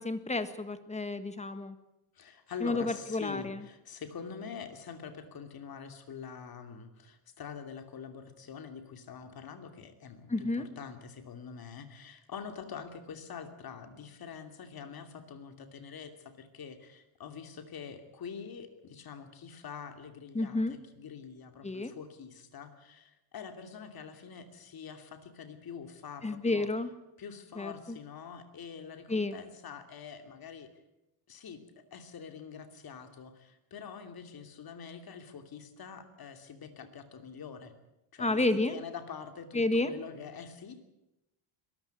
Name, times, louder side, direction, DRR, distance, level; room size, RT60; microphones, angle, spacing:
voice 1, 0.0-1.8 2.6-3.6 10.3-10.7 20.3-20.8 21.6-21.9 26.2-26.9 27.6-28.0 29.1-29.4 38.2-38.8 39.5-39.9, left 2 dB, 15° left, 11 dB, 1.5 m, -31 dB
voice 2, 2.1-26.7 27.2-30.7 31.3-37.7 38.1-40.8, left 6 dB, 45° left, 8 dB, 2.8 m, -45 dB
22.0 x 14.0 x 9.5 m, 0.90 s
cardioid pair, 135°, 50 cm